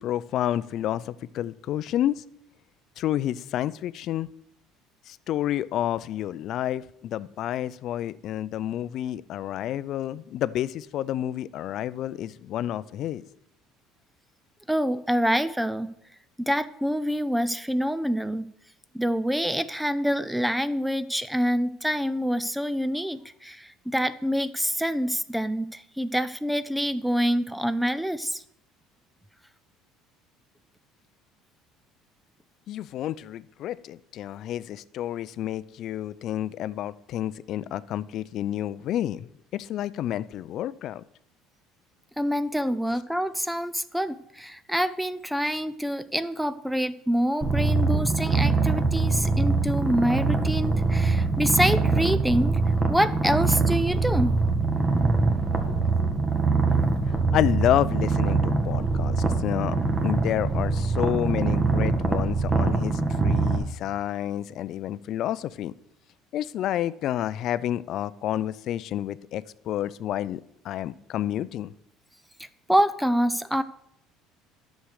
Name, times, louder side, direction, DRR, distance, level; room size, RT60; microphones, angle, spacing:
voice 1, 0.0-2.2 3.0-4.3 5.1-13.2 32.7-41.0 47.7-47.8 55.9-56.1 57.1-65.7 66.3-71.7, left 12 dB, 60° left, 17 dB, 0.5 m, -29 dB
voice 2, 14.7-15.9 16.4-18.5 18.9-28.4 42.2-52.6 52.9-54.4 72.7-73.6, equal, 5° right, 14 dB, 0.5 m, -26 dB
Purr, 47.4-63.6, right 3 dB, 30° right, 1.7 m, -23 dB
10.0 x 6.4 x 6.4 m, 0.75 s
supercardioid pair, 85°, 0 cm